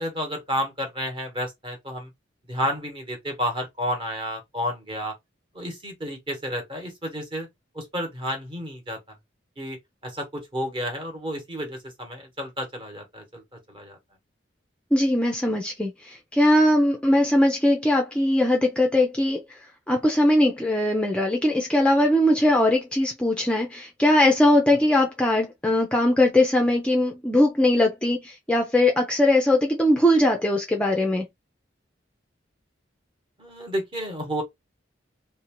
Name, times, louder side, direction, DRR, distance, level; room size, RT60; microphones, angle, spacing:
voice 1, 0.0-2.1 2.5-5.1 5.5-7.5 7.7-9.0 9.6-9.8 10.0-13.4 13.7-14.0 24.7-24.8 33.4-34.4, equal, 25° right, 1.0 m, -31 dB
voice 2, 14.9-19.4 19.9-31.3, left 1 dB, 5° left, 0.4 m, -20 dB
2.7 x 2.1 x 2.9 m
head